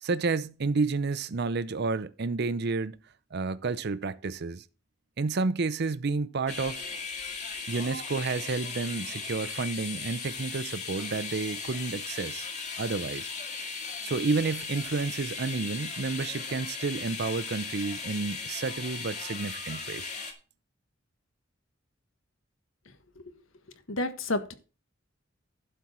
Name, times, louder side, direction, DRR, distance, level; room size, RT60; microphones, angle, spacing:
voice 1, 0.0-3.0 3.3-4.6 5.2-6.8 7.7-12.5 12.8-13.3 14.0-20.1, right 4 dB, 55° right, 0.6 m, -30 dB
sound 1, 6.5-20.3, left 5 dB, 35° left, 2.2 m, -37 dB
voice 2, 23.9-24.5, left 2 dB, 85° left, 1.5 m, -30 dB
11.5 x 4.5 x 7.4 m
head